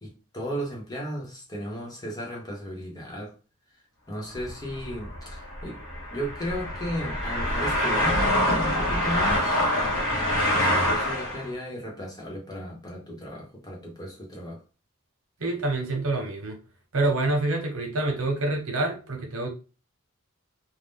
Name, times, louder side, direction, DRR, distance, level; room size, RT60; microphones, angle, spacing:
voice 1, 0.0-3.3 4.1-5.8 6.1-9.6 10.4-14.6, equal, 20° left, 0.9 m, -35 dB
sound 1, 4.3-11.5, left 1 dB, 75° left, 1.4 m, -25 dB
voice 2, 15.4-16.6 16.9-19.5, right 2 dB, 90° right, 1.0 m, -27 dB
2.6 x 2.1 x 3.6 m
head